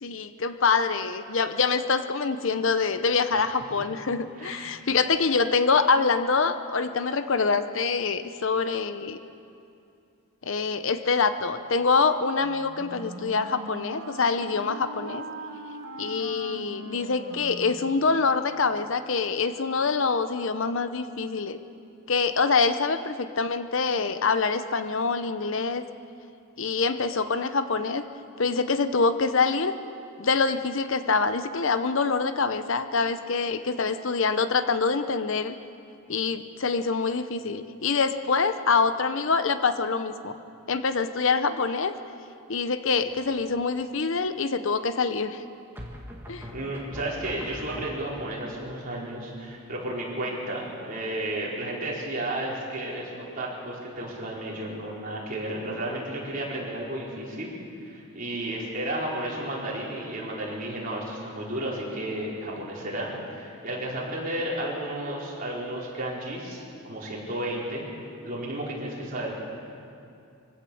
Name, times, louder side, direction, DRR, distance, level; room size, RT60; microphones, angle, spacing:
voice 1, 0.0-9.2 10.4-15.2 16.0-21.6 22.1-25.8 26.6-28.0 28.4-29.7 30.2-35.6 36.1-40.4 40.7-41.9 42.5-45.4 46.3-46.5, left 4 dB, 60° left, 11 dB, 0.7 m, -25 dB
voice 2, 4.4-4.7 46.5-57.5 57.8-69.3, right 1 dB, 40° right, -5 dB, 4.9 m, -33 dB
Wind instrument woodwind instrument, 12.4-18.5, right 2 dB, 75° right, 1.7 m, -41 dB
sound 1, 43.1-43.6 45.7-48.4, equal, 10° right, 1.9 m, -42 dB
24.5 x 16.5 x 7.1 m, 2.6 s
head